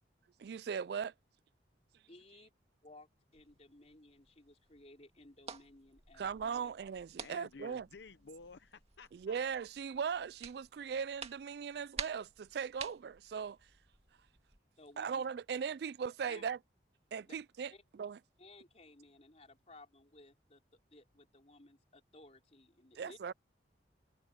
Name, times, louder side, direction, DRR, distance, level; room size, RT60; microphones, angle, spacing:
voice 1, 0.4-1.1 6.2-7.9 9.1-13.6 15.0-16.6 17.1-17.7 18.0-18.2 23.0-23.3, right 6 dB, 55° right, 0.3 m, -38 dB
voice 2, 2.1-2.5 2.8-6.7 14.8-15.1 16.2-16.4 17.2-17.4 17.7-17.8 18.4-23.2, left 2 dB, 35° left, 3.8 m, -58 dB
sound 1, 3.3-14.6, right 6 dB, 35° right, 2.2 m, -51 dB
voice 3, 7.2-9.3, left 4 dB, 70° left, 0.7 m, -53 dB
head